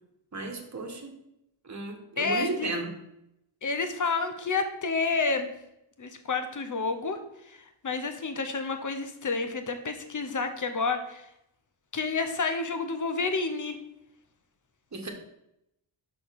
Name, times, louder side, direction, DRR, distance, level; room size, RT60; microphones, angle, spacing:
voice 1, 0.3-1.1 1.6-2.9 14.9-15.1, right 2 dB, 35° right, 2 dB, 1.5 m, -34 dB
voice 2, 2.2-2.7 3.6-5.5 6.0-7.2 7.5-7.6 7.8-11.3 11.9-13.8, left 4 dB, 40° left, 7 dB, 1.0 m, -29 dB
6.4 x 5.3 x 5.9 m, 0.82 s
wide cardioid pair, 125°, 49 cm